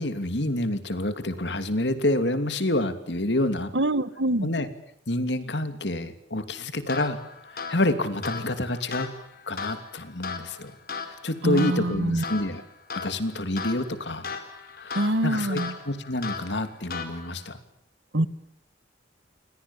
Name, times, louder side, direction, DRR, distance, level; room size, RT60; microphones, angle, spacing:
voice 1, 0.0-3.7 4.4-4.7 5.1-7.2 7.7-9.1 9.5-10.7 11.1-12.6 12.9-14.3 14.7-17.6, left 1 dB, 70° left, 10 dB, 2.9 m, -28 dB
voice 2, 3.7-4.5 11.4-12.2 14.9-15.7 18.1-18.3, right 1 dB, 80° right, 15 dB, 1.6 m, -24 dB
sound 1, 6.9-17.5, left 5 dB, 55° left, 4.4 m, -38 dB
29.5 x 24.5 x 7.3 m, 0.73 s
head